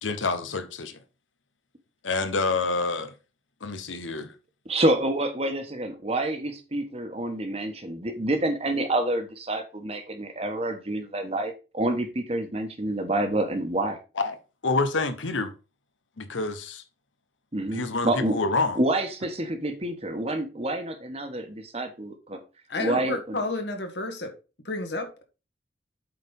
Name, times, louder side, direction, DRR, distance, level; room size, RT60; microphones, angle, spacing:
voice 1, 0.0-1.0 2.0-3.1 3.6-4.3 14.2-14.4 14.6-15.5 16.2-16.8 17.7-18.8, left 3 dB, 85° left, 1.0 m, -27 dB
voice 2, 4.7-14.0 17.5-18.4 18.8-22.4 22.8-23.4, right 1 dB, 30° right, 1.3 m, -28 dB
voice 3, 22.7-24.3 24.6-25.2, left 2 dB, 60° left, 1.7 m, -30 dB
8.1 x 4.2 x 5.3 m
head